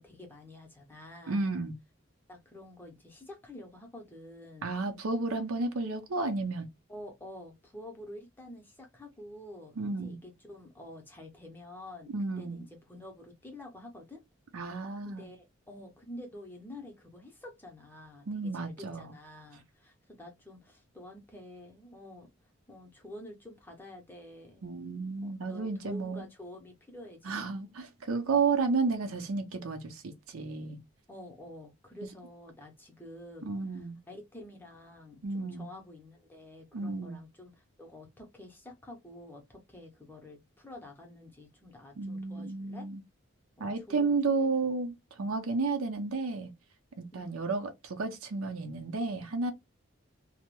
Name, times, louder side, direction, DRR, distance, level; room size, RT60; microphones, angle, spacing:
voice 1, 0.0-1.5 2.3-4.7 6.9-14.2 15.0-22.3 22.7-24.6 25.5-27.6 31.1-42.9 43.6-44.7 47.1-47.5, left 1 dB, 10° left, 0.6 m, -49 dB
voice 2, 1.3-1.8 4.6-6.7 9.8-10.2 12.1-12.6 14.5-15.3 18.3-19.1 24.6-26.3 27.2-30.8 33.4-34.0 35.2-35.7 36.7-37.2 42.0-43.0 43.6-46.5 47.0-49.5, right 4 dB, 85° right, 0.6 m, -32 dB
2.2 x 2.0 x 2.9 m
head